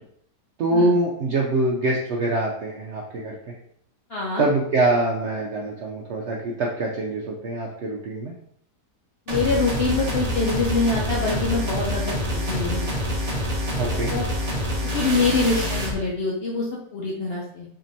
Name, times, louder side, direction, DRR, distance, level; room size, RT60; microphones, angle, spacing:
voice 1, 0.6-3.5 4.4-8.3 13.8-14.1, right 2 dB, 80° right, -1 dB, 0.6 m, -24 dB
voice 2, 4.1-4.4 9.3-13.2 13.9-14.3 14.8-17.8, left 3 dB, 75° left, -3 dB, 0.5 m, -25 dB
sound 1, 9.3-16.0, equal, 40° right, 0.5 m, -26 dB
4.4 x 2.9 x 2.6 m, 0.68 s
omnidirectional pair, 1.8 m